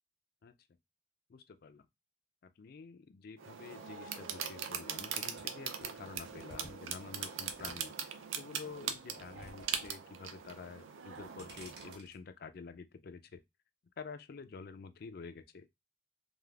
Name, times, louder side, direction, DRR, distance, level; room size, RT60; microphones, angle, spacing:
voice 1, 1.3-1.9 2.4-13.4 14.0-15.8, left 5 dB, 50° left, 0.3 m, -49 dB
sound 1, 3.4-12.0, right 7 dB, 75° right, 0.5 m, -41 dB
sound 2, 5.4-8.2 8.6-9.9 10.2-10.7 11.0-12.2, right 1 dB, 55° right, 1.0 m, -54 dB
3.2 x 2.4 x 2.3 m
head